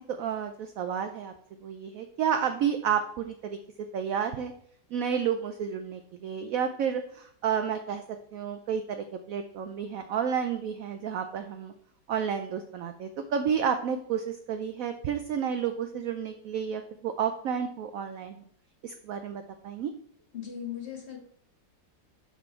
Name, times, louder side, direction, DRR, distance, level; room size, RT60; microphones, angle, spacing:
voice 1, 0.1-1.3 1.6-3.6 3.9-4.5 4.9-8.0 8.3-11.7 12.1-18.4 18.8-19.9, right 7 dB, 80° right, 7 dB, 0.7 m, -31 dB
voice 2, 20.3-21.2, left 9 dB, 40° left, 2 dB, 1.4 m, -38 dB
6.1 x 5.2 x 4.4 m, 0.65 s
omnidirectional pair, 2.0 m